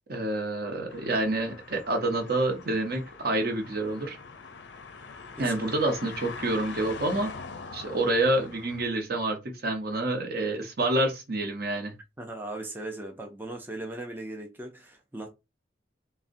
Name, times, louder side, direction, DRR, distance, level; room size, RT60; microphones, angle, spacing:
voice 1, 0.1-4.2 5.4-7.3 7.7-11.9, right 2 dB, 55° right, 0.8 m, -28 dB
sound 1, 0.9-8.9, left 4 dB, 70° left, 0.4 m, -43 dB
voice 2, 5.4-5.7 12.2-15.3, right 2 dB, 10° right, 0.4 m, -38 dB
3.7 x 2.1 x 2.5 m
head